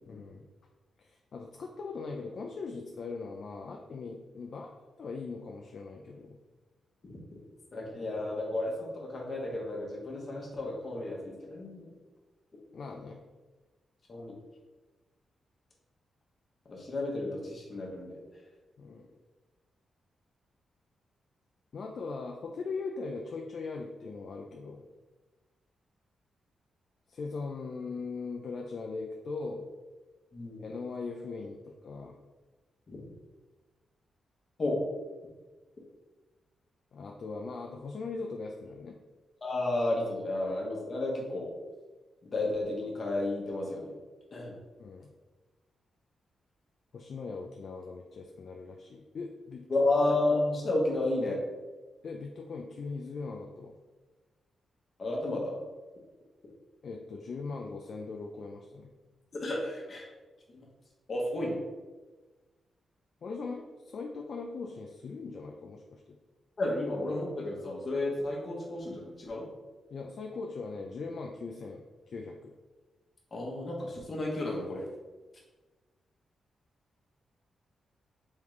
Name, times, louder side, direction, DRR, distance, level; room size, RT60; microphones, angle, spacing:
voice 1, 0.1-0.5 1.0-4.7 5.0-6.4 12.7-13.2 18.8-19.2 21.7-24.8 27.1-29.7 30.6-32.2 36.9-38.9 44.8-45.1 46.9-49.7 52.0-53.7 56.8-58.9 63.2-66.2 69.9-72.5, left 4 dB, 55° left, 2 dB, 0.3 m, -40 dB
voice 2, 7.7-11.9 14.1-14.4 16.6-18.2 30.3-30.6 32.9-33.1 34.6-34.8 39.4-41.5 42.2-44.0 44.3-44.6 49.7-51.4 55.0-55.6 59.3-60.1 60.5-60.6 61.1-61.6 66.6-69.5 73.3-74.9, left 2 dB, 35° left, -2 dB, 1.0 m, -32 dB
3.6 x 3.4 x 3.2 m, 1.3 s
wide cardioid pair, 130°, 0 cm